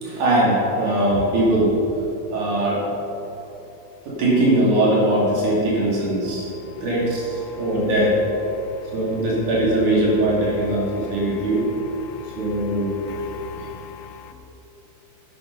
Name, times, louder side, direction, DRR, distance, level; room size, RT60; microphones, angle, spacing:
voice 1, 0.0-1.7 2.3-2.9 4.1-6.4 6.8-8.2 8.9-11.7 12.4-13.0, right 1 dB, 60° right, -6 dB, 4.3 m, -20 dB
voice 2, 8.5-8.9 10.8-11.5 12.0-14.3, left 9 dB, 90° left, 7 dB, 2.6 m, -41 dB
11.5 x 9.1 x 5.5 m, 2.9 s
omnidirectional pair, 4.0 m